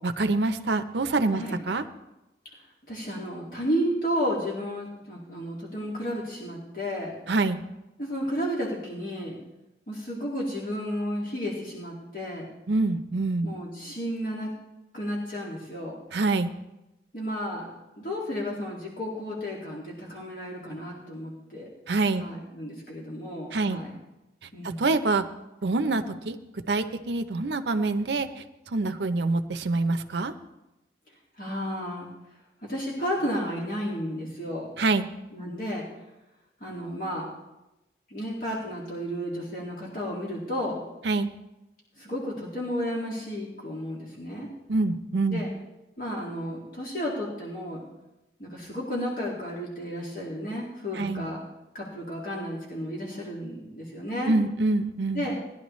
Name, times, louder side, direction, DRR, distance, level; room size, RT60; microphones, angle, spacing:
voice 1, 0.0-1.8 7.3-7.6 12.7-13.5 16.1-16.5 21.9-22.3 23.5-23.8 24.8-25.2 25.6-26.4 26.7-28.3 28.7-30.3 34.8-35.1 41.1-41.3 44.7-45.4 51.0-51.3 54.3-55.3, right 3 dB, 75° right, 9 dB, 0.6 m, -25 dB
voice 2, 2.9-7.1 8.0-9.3 9.9-12.4 13.4-14.5 14.9-16.0 17.1-17.7 18.0-21.7 22.2-24.0 24.5-24.8 31.4-32.1 32.6-34.7 35.3-35.8 36.6-37.3 38.1-40.8 42.0-44.5 45.3-45.5 46.0-47.8 48.4-51.4 51.7-54.3 55.1-55.4, equal, 50° left, -4 dB, 2.1 m, -32 dB
18.0 x 11.0 x 3.1 m, 0.96 s
head